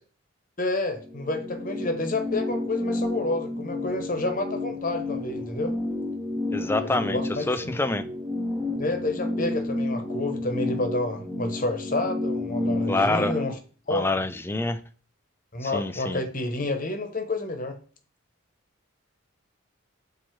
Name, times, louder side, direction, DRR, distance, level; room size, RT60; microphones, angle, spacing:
voice 1, 0.6-5.7 6.8-7.7 8.8-13.6 13.9-14.1 15.5-17.8, left 2 dB, 40° left, 6 dB, 1.0 m, -29 dB
sound 1, 1.0-13.5, left 2 dB, 5° right, 0.8 m, -31 dB
voice 2, 6.5-7.2 7.5-8.0 12.9-13.4 13.9-14.8 15.6-16.2, left 2 dB, 10° left, 11 dB, 0.3 m, -26 dB
7.4 x 2.8 x 4.6 m, 0.41 s
head